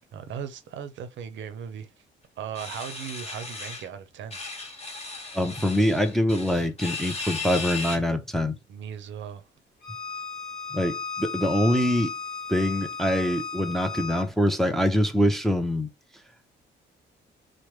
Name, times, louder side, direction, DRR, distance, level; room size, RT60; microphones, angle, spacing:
voice 1, 0.1-1.9 2.4-4.4 8.7-9.4, right 8 dB, 70° right, 0.6 m, -37 dB
sound 1, 2.5-3.9 4.3-8.0, left 3 dB, 30° left, 1.1 m, -36 dB
voice 2, 5.3-8.5 10.7-12.1 12.5-15.9, equal, ahead, 0.5 m, -24 dB
Bowed string instrument, 9.8-14.3, left 4 dB, 50° left, 1.3 m, -34 dB
3.1 x 2.0 x 3.1 m
cardioid pair, 90°, 20 cm